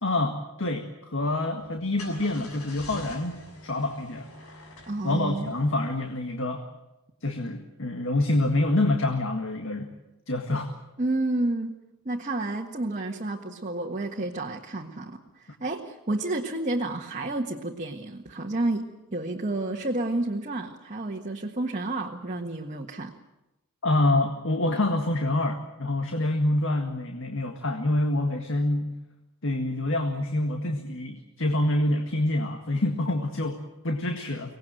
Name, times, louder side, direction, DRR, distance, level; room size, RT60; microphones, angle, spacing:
voice 1, 0.0-4.3 5.0-6.6 7.2-9.9 10.3-10.7 23.8-28.9 29.4-34.5, left 2 dB, 60° left, 4 dB, 1.9 m, -26 dB
Car / Engine starting, 1.6-6.3, left 2 dB, 80° left, 6.8 m, -46 dB
voice 2, 4.9-5.5 11.0-11.8 12.1-18.8 19.1-23.1, right 2 dB, 35° right, -1 dB, 1.6 m, -30 dB
24.5 x 18.5 x 9.2 m, 0.97 s
head